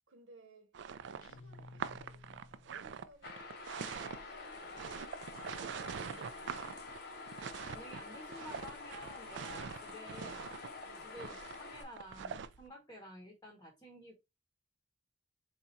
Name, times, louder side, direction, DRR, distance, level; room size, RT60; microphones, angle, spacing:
voice 1, 0.1-0.8 1.2-5.2 5.5-7.0 10.8-11.1, right 3 dB, 80° right, 1.0 m, -62 dB
sound 1, 0.7-12.6, right 6 dB, 60° right, 0.3 m, -44 dB
sound 2, 1.2-2.9, left 3 dB, 85° left, 0.4 m, -55 dB
sound 3, 3.2-11.8, left 3 dB, 50° left, 0.8 m, -48 dB
voice 2, 7.7-10.5 11.0-14.1, left 1 dB, 15° left, 0.9 m, -51 dB
4.0 x 2.4 x 4.1 m
head